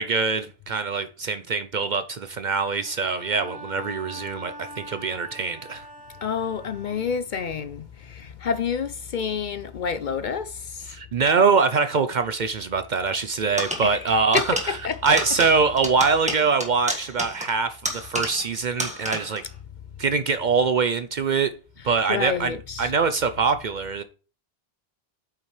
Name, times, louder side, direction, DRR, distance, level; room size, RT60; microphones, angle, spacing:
voice 1, 0.0-5.8 10.9-14.8 15.0-19.4 20.0-21.5 21.8-24.0, right 5 dB, 55° right, 0.7 m, -23 dB
Bowed string instrument, 2.8-7.4, right 1 dB, 90° left, 3.3 m, -42 dB
voice 2, 6.2-10.9 13.8-14.0 14.3-14.5 14.8-15.2 22.1-22.9, left 6 dB, 55° left, 0.6 m, -28 dB
sound 1, 13.6-18.5 18.8-19.5, equal, 5° right, 1.6 m, -31 dB
8.5 x 6.1 x 3.2 m
omnidirectional pair, 1.0 m